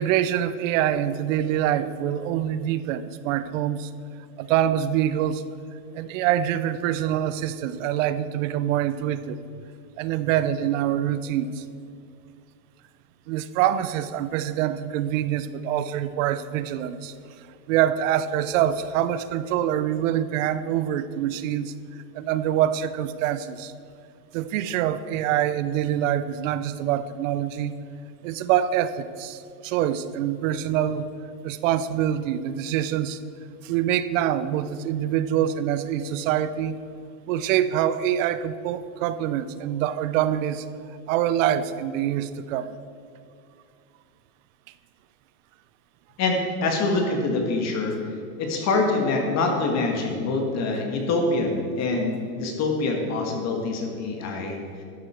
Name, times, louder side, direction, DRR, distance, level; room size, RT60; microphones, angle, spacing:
voice 1, 0.0-3.9 4.4-5.4 5.9-9.4 10.0-11.6 13.3-23.7 24.3-27.7 28.2-31.1 31.4-33.2 33.6-36.8 37.3-40.7 41.1-42.7, right 11 dB, 60° right, 14 dB, 0.7 m, -25 dB
voice 2, 46.2-47.9 48.4-54.6, left 3 dB, 35° left, 2 dB, 1.8 m, -25 dB
12.5 x 8.0 x 4.4 m, 2.4 s
supercardioid pair, 125°, 44 cm